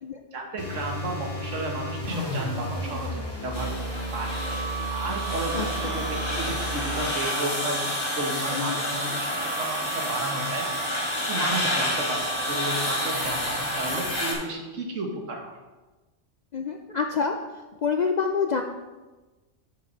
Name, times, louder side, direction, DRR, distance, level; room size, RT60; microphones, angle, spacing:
voice 1, 0.3-3.8 4.1-4.4 4.9-10.9 11.3-15.6, right 2 dB, 85° right, 1 dB, 1.6 m, -33 dB
sound 1, 0.6-7.1, equal, 20° left, 1.4 m, -33 dB
sound 2, 3.5-14.3, left 1 dB, 45° left, 2.0 m, -30 dB
sound 3, 3.9-14.3, right 7 dB, 60° right, 0.5 m, -36 dB
voice 2, 5.5-6.0 8.5-8.8 16.5-17.4 17.8-18.6, left 5 dB, 65° left, 4 dB, 0.4 m, -27 dB
6.7 x 6.5 x 4.5 m, 1.2 s
omnidirectional pair, 1.3 m